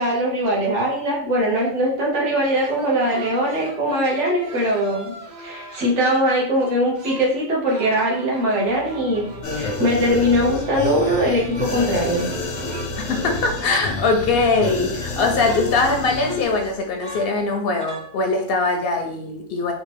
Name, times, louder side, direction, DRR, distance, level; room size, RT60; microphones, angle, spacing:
voice 1, 0.0-5.1 5.4-9.2 9.5-12.3, equal, 80° right, -3 dB, 1.4 m, -21 dB
sound 1, 2.4-6.2 6.6-7.4 7.7-14.2 14.5-15.1 15.4-17.4 17.8-18.1, left 1 dB, 50° right, 0.6 m, -39 dB
sound 2, 8.7-16.4, left 2 dB, 25° left, 0.5 m, -36 dB
sound 3, 9.4-16.8 17.1-17.2, left 3 dB, 85° left, 1.0 m, -31 dB
voice 2, 13.0-19.7, left 3 dB, 65° left, 3 dB, 0.7 m, -21 dB
3.4 x 2.5 x 3.3 m, 0.64 s
omnidirectional pair, 1.2 m